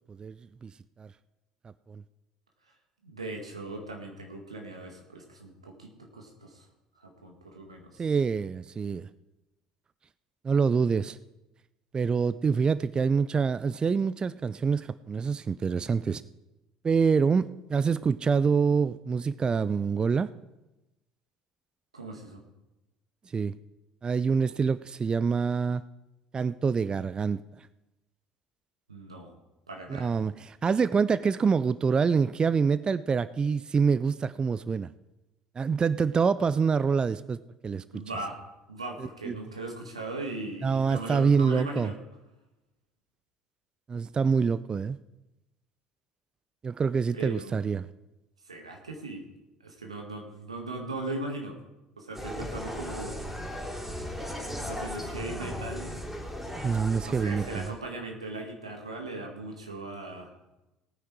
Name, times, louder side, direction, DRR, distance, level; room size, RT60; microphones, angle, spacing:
voice 1, 0.1-0.7 1.0-1.1 1.9-2.0 8.0-9.1 10.4-11.2 11.9-16.2 16.8-20.3 23.3-23.5 24.0-25.8 26.3-27.7 29.9-34.9 35.6-37.8 39.0-39.3 40.6-41.9 43.9-45.0 46.6-47.9 55.4-55.5 56.6-57.7, right 5 dB, 25° right, 16 dB, 0.4 m, -26 dB
voice 2, 3.0-6.7 7.0-8.0 21.9-22.4 28.9-29.4 29.7-30.2 37.9-38.4 38.7-42.0 47.1-47.6 48.4-49.3 49.6-51.6 52.0-53.2 54.7-55.9 57.0-60.3, right 2 dB, 85° right, 2 dB, 1.9 m, -39 dB
Insect, 52.1-57.7, equal, 5° right, 3.7 m, -37 dB
18.0 x 9.5 x 4.8 m, 1.0 s
figure-of-eight pair, 60°, 3 cm